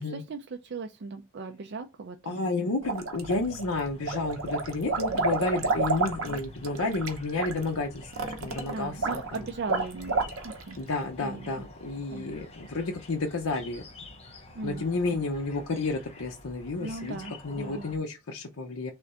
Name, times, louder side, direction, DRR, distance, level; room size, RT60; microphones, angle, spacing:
voice 1, 0.0-2.4 8.7-10.8 11.2-11.5 12.1-12.4 14.5-14.9 16.8-17.8, right 4 dB, 50° right, 0.4 m, -38 dB
voice 2, 2.2-9.5 10.8-13.8 14.6-18.9, left 3 dB, 75° left, 0.6 m, -31 dB
sound 1, 2.8-3.6 4.0-10.7, right 3 dB, 65° right, 0.8 m, -30 dB
sound 2, 3.2-18.0, left 2 dB, 30° left, 0.7 m, -48 dB
3.8 x 3.3 x 4.1 m
head